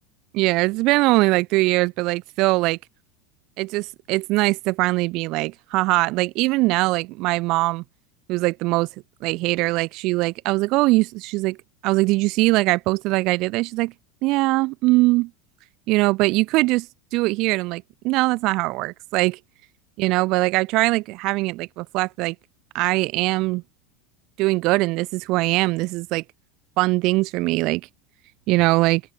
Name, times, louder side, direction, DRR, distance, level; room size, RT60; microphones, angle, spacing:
voice 1, 0.3-2.8 3.6-7.8 8.3-8.9 9.2-11.6 11.8-13.9 14.2-15.3 15.9-16.9 17.1-19.4 20.0-22.3 22.7-23.6 24.4-26.2 26.8-27.8 28.5-29.0, right 22 dB, 55° right, 3.9 m, -21 dB
open air
hypercardioid pair, 90°, 0 cm